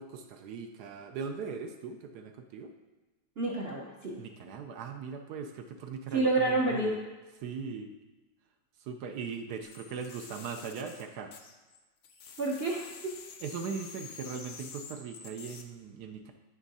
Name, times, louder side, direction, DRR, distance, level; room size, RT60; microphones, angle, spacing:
voice 1, 0.0-2.7 4.2-7.0 7.4-7.9 8.8-11.3 13.4-16.3, right 6 dB, 70° right, 5 dB, 1.1 m, -40 dB
voice 2, 3.4-4.2 6.1-6.9 12.4-12.9, right 2 dB, 50° right, -2 dB, 0.7 m, -28 dB
sound 1, 9.6-11.8 12.0-15.6, left 6 dB, 70° left, 0.7 m, -48 dB
10.5 x 3.6 x 4.1 m, 1.2 s
omnidirectional pair, 2.0 m